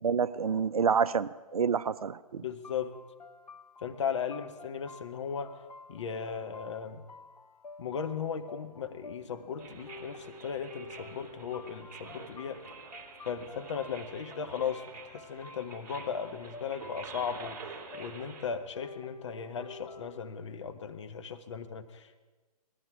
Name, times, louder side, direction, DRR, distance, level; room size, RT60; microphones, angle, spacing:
voice 1, 0.0-2.4, right 6 dB, 65° right, 16 dB, 0.5 m, -28 dB
voice 2, 2.4-3.0 3.8-5.6 5.9-7.0 7.8-12.6 13.2-22.2, left 7 dB, 50° left, 7 dB, 1.2 m, -37 dB
sound 1, 2.6-20.4, left 3 dB, 80° left, 0.8 m, -51 dB
sound 2, 9.6-18.5, right 4 dB, 30° right, 2.7 m, -48 dB
19.5 x 14.0 x 4.8 m, 1.3 s
figure-of-eight pair, 130°, 20 cm